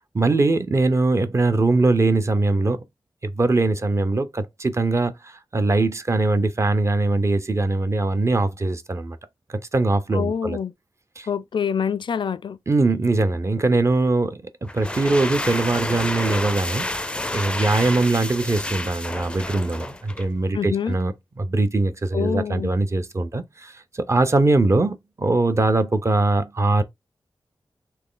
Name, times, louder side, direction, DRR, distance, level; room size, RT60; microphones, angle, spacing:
voice 1, 0.1-2.8 3.2-9.2 9.5-10.6 11.2-11.3 12.7-21.1 21.4-26.8, right 2 dB, 35° right, 0.6 m, -21 dB
voice 2, 10.1-10.7 11.3-12.6 20.5-21.0 22.1-22.7, left 7 dB, 75° left, 0.4 m, -26 dB
sound 1, 14.6-20.4, left 1 dB, 10° left, 0.4 m, -29 dB
4.2 x 3.1 x 3.9 m
wide cardioid pair, 120°, 8 cm